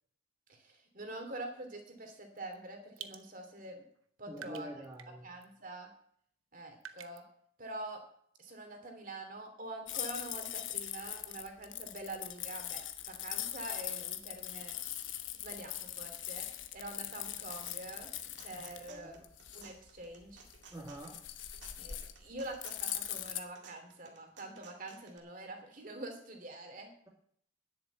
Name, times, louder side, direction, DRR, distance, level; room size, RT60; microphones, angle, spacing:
voice 1, 0.5-3.8 4.2-4.7 5.2-5.9 6.5-7.2 7.6-8.0 8.4-18.1 18.4-19.2 19.5-20.5 21.8-26.9, right 2 dB, 40° right, 4 dB, 2.7 m, -46 dB
sound 1, 2.4-2.5 3.0-3.2 3.9-4.1 4.4-5.1 5.4-5.5 6.8-7.2, right 9 dB, 85° right, 1.0 m, -48 dB
voice 2, 4.3-5.2 18.9-19.3 20.7-21.2, equal, 15° right, -3 dB, 1.8 m, -46 dB
sound 2, 9.9-23.4, left 12 dB, 70° left, 1.0 m, -41 dB
sound 3, 17.4-25.2, right 5 dB, 60° right, 2.0 m, -57 dB
10.5 x 7.7 x 8.2 m, 0.64 s
head